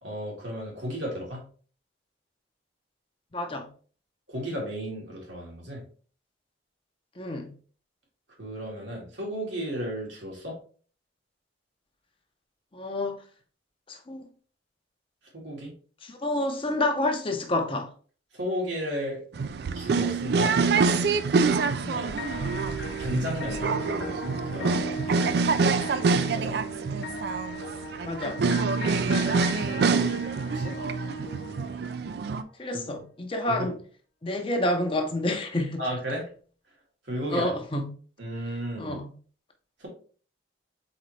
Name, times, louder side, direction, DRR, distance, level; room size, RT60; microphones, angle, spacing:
voice 1, 0.0-1.4 4.3-5.8 8.4-10.6 15.3-15.7 18.3-19.2 19.7-20.6 21.9-22.6 23.0-25.4 26.3-26.6 28.9-30.2 30.5-30.7 32.7-32.8 33.5-33.7 35.8-36.3 37.1-37.5 38.2-39.0 39.8-39.9, equal, 80° right, 2.1 m, -34 dB
voice 2, 3.3-3.7 7.2-7.5 12.7-13.2 13.9-14.3 16.0-17.9 21.8-22.1 28.0-28.4 32.6-33.8 34.2-35.8 37.3-37.9 38.8-39.1, left 1 dB, 30° left, 0.6 m, -29 dB
sound 1, 19.3-32.4, right 4 dB, 60° right, 0.3 m, -26 dB
sound 2, 22.2-32.2, equal, 85° left, 0.7 m, -38 dB
4.2 x 4.0 x 3.1 m
head